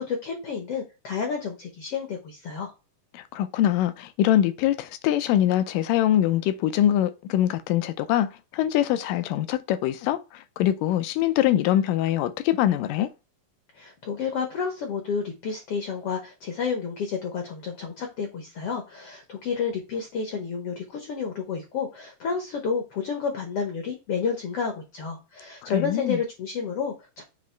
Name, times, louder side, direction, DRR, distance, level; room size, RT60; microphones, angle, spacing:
voice 1, 0.0-2.7 13.7-27.2, left 5 dB, 65° left, 1.5 m, -30 dB
voice 2, 3.1-13.1 25.6-26.2, left 12 dB, 80° left, 2.2 m, -23 dB
7.5 x 3.0 x 4.4 m
omnidirectional pair, 4.0 m